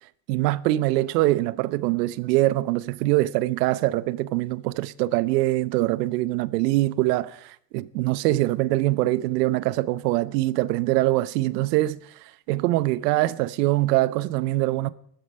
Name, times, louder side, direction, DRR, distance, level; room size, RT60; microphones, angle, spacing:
voice 1, 0.3-14.9, right 17 dB, 70° right, 0.9 m, -23 dB
16.0 x 13.0 x 5.5 m
supercardioid pair, 150°, 50 cm